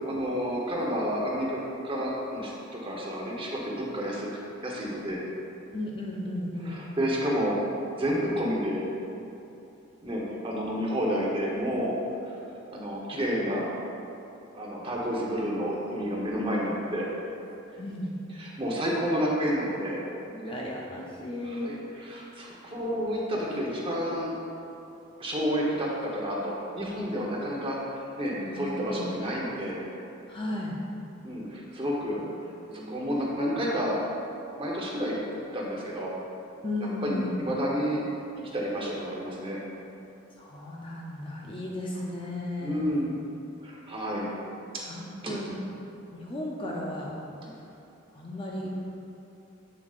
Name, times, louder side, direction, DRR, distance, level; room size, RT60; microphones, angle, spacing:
voice 1, 0.0-1.6 1.8-4.3 4.6-5.2 6.6-7.5 8.0-8.8 10.0-11.9 12.3-12.4 12.7-13.7 14.5-17.1 18.3-20.0 21.4-24.4 25.1-29.8 31.2-32.2 32.7-34.0 34.6-35.2 35.5-36.1 37.0-38.0 38.5-39.6 42.6-43.2 43.6-44.3 45.2-45.3 47.4-47.5, equal, 25° right, -3 dB, 1.0 m, -30 dB
voice 2, 5.7-6.8 17.8-18.2 20.3-21.7 28.4-29.1 30.3-30.7 32.1-32.3 32.7-33.4 36.6-37.4 40.4-43.0 44.8-45.6 46.1-47.2 48.1-48.9, left 1 dB, 25° left, -3 dB, 0.6 m, -35 dB
7.9 x 7.4 x 2.5 m, 2.8 s
head